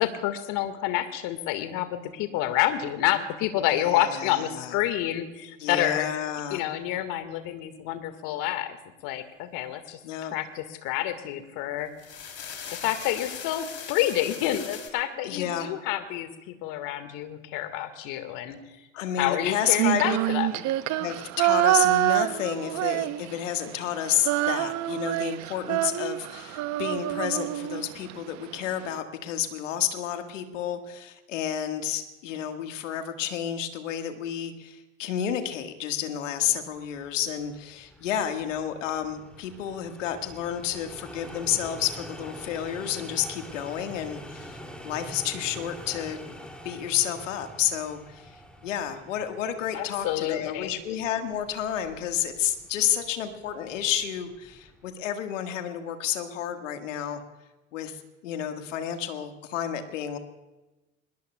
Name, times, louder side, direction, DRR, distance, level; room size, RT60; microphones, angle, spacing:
voice 1, 0.0-6.1 6.5-8.8 9.0-11.9 12.7-18.9 19.2-20.6 49.7-50.7, left 13 dB, 55° left, 10 dB, 1.8 m, -28 dB
voice 2, 3.8-4.8 5.6-6.6 10.0-10.3 15.2-15.7 18.9-20.2 21.0-46.2 46.6-48.3 48.6-57.2 57.7-60.2, left 10 dB, 75° left, 7 dB, 1.7 m, -30 dB
sound 1, 11.8-14.9, left 7 dB, 40° left, 3.3 m, -39 dB
Female singing, 19.6-23.6 23.8-28.1, right 16 dB, 45° right, 0.8 m, -26 dB
sound 2, 36.6-54.9, equal, 5° left, 2.6 m, -46 dB
25.5 x 20.5 x 2.3 m, 1.1 s
hypercardioid pair, 75°, 38 cm